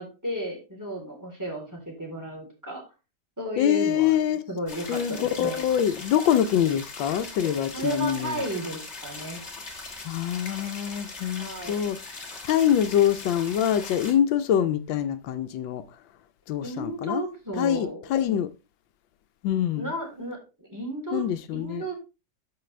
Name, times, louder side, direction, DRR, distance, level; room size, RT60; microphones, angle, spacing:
voice 1, 0.0-2.8 3.4-4.1 4.5-5.6 7.7-9.4 11.4-11.9 16.6-18.0 19.8-21.2 21.5-22.0, right 1 dB, 10° right, 3.5 m, -33 dB
voice 2, 3.6-4.4 4.9-8.4 10.0-12.0 12.4-15.8 16.5-17.2 17.6-18.5 19.4-19.9 21.1-21.8, left 10 dB, 85° left, 1.4 m, -25 dB
sound 1, 4.7-14.1, left 3 dB, 35° left, 2.0 m, -40 dB
13.5 x 5.1 x 3.2 m
omnidirectional pair, 2.0 m